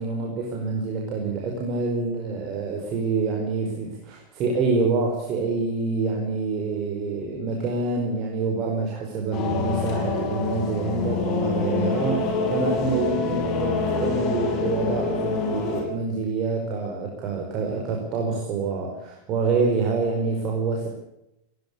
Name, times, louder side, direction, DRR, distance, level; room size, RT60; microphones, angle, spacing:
voice 1, 0.0-20.9, right 4 dB, 35° right, 1 dB, 5.0 m, -26 dB
sound 1, 9.3-15.8, left 4 dB, 35° left, 7.0 m, -26 dB
20.0 x 18.0 x 8.2 m, 0.85 s
figure-of-eight pair, 90°, 0 cm